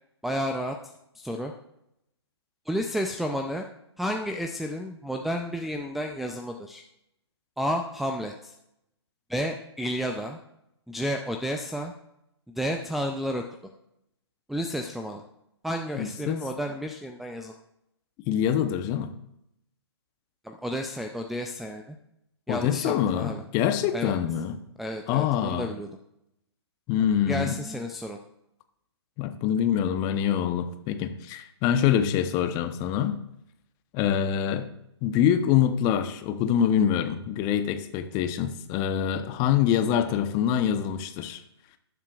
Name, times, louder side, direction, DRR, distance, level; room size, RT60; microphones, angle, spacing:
voice 1, 0.2-0.8 1.2-1.5 2.7-3.7 4.0-6.8 7.6-8.5 9.3-10.4 10.9-11.9 12.5-13.4 14.5-15.2 15.6-17.6 20.4-22.0 22.5-23.4 23.9-24.2 24.8-25.9 27.3-28.2, equal, ahead, 1 dB, 0.5 m, -31 dB
voice 2, 15.9-16.4 18.3-19.1 22.5-24.6 25.1-25.7 26.9-27.6 29.2-33.2 33.9-34.7 35.0-41.4, left 9 dB, 25° left, 8 dB, 0.9 m, -25 dB
18.0 x 7.3 x 2.4 m, 0.81 s
hypercardioid pair, 130°, 15 cm